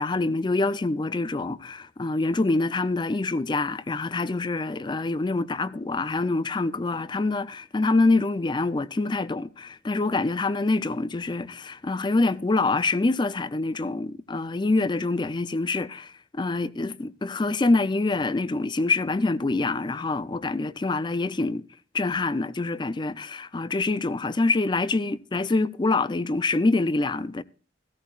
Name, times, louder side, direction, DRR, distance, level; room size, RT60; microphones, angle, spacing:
voice 1, 0.0-21.6 21.9-27.4, left 3 dB, 25° left, 0.5 m, -25 dB
16.0 x 13.5 x 2.4 m
head